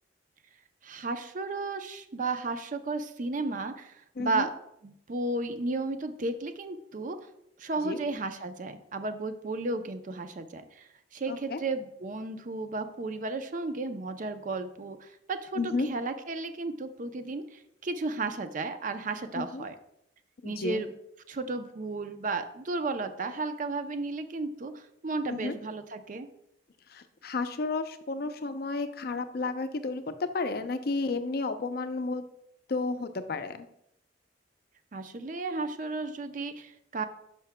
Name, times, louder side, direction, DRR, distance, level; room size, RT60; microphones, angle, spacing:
voice 1, 0.8-4.5 4.8-7.2 7.6-19.8 20.4-20.9 21.3-26.3 34.9-37.0, right 3 dB, 45° right, 8 dB, 0.5 m, -34 dB
voice 2, 4.2-4.5 7.8-8.0 11.3-11.6 15.6-15.9 19.3-19.6 20.4-20.8 25.3-25.5 26.9-32.2 32.7-33.7, left 3 dB, 55° left, 9 dB, 0.5 m, -32 dB
10.5 x 5.7 x 2.2 m, 0.78 s
head